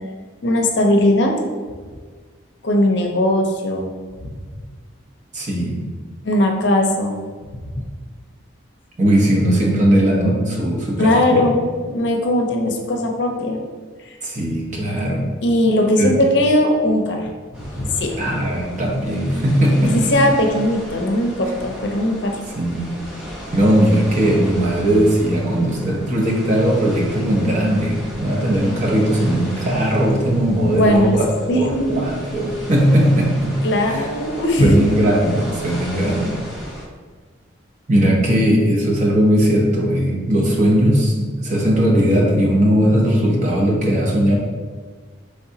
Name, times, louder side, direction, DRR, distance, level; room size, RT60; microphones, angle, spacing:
voice 1, 0.4-1.3 2.6-3.9 6.2-7.1 11.0-13.6 15.4-17.3 17.8-18.1 19.8-22.4 30.7-31.2 31.5-32.0 33.6-34.9, left 1 dB, 60° left, 2 dB, 0.5 m, -18 dB
voice 2, 5.3-5.8 9.0-11.4 14.2-15.3 16.0-16.2 18.2-20.1 22.6-22.9 23.5-31.2 31.5-33.5 33.9-34.1 34.6-36.3 37.9-44.3, equal, 35° right, -3 dB, 0.8 m, -18 dB
sound 1, 17.5-36.8, equal, 5° right, 0.8 m, -35 dB
4.8 x 3.4 x 2.7 m, 1.5 s
head